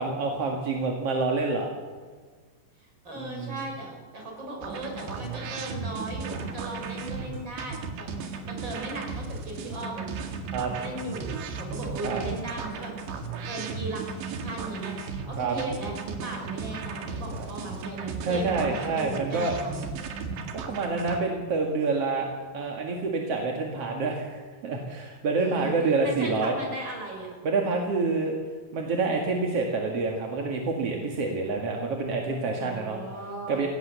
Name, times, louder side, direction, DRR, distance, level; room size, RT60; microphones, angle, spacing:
voice 1, 0.0-1.7 3.1-3.6 10.5-10.7 12.0-12.2 15.4-15.6 17.4-17.5 18.2-19.6 20.7-26.5 27.4-28.4 28.7-33.0 33.5-33.7, right 3 dB, 45° right, 1 dB, 2.2 m, -27 dB
voice 2, 2.8-10.0 10.8-12.9 13.5-14.0 14.4-15.0 15.2-19.9 25.4-25.7 26.0-27.4 32.6-33.6, right 2 dB, 25° right, 1 dB, 6.6 m, -37 dB
sound 1, 4.6-21.2, right 5 dB, 75° right, 4.1 m, -35 dB
23.5 x 17.5 x 7.0 m, 1.5 s
omnidirectional pair, 5.2 m